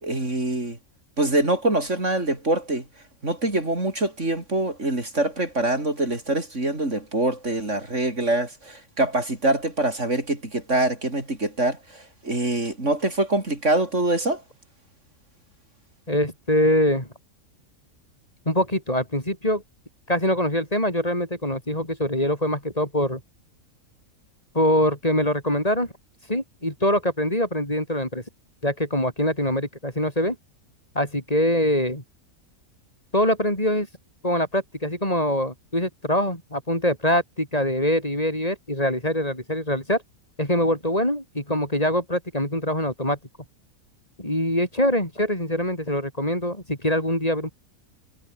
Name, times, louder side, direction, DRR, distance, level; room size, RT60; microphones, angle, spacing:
voice 1, 0.0-0.8 1.2-2.8 3.2-14.4, right 2 dB, 55° right, 5.6 m, -24 dB
voice 2, 16.1-17.1 18.5-19.6 20.1-23.2 24.5-25.9 26.3-28.2 28.6-30.4 30.9-32.0 33.1-33.9 34.2-40.0 40.4-43.2 44.2-47.5, left 1 dB, 25° left, 6.3 m, -24 dB
omnidirectional pair, 1.5 m